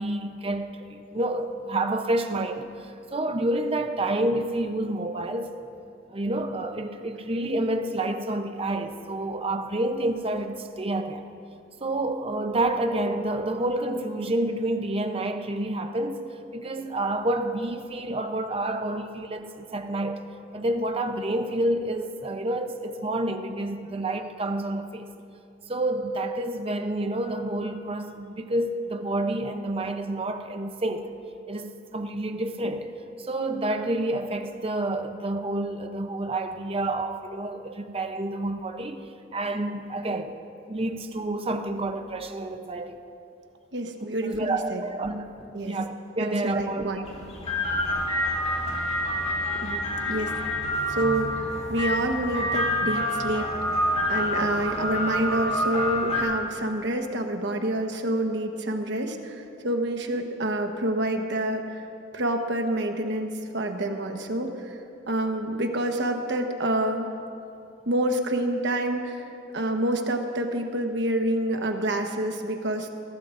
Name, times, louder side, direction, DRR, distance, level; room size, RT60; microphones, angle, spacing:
voice 1, 0.0-5.5 6.1-11.2 11.8-20.3 20.5-25.1 25.7-31.1 31.5-32.9 33.2-39.0 39.3-40.3 40.7-43.0 44.2-47.2, right 1 dB, 30° right, 6 dB, 0.7 m, -29 dB
voice 2, 43.7-44.8 45.5-45.8 46.2-47.1 49.6-50.3 50.9-51.3 51.7-53.6 54.1-61.6 62.1-64.8 65.1-67.1 67.9-72.9, right 1 dB, 65° right, 4 dB, 1.2 m, -27 dB
sound 1, 47.0-56.2, left 1 dB, 30° left, 2.0 m, -27 dB
22.5 x 16.0 x 2.6 m, 2.6 s
head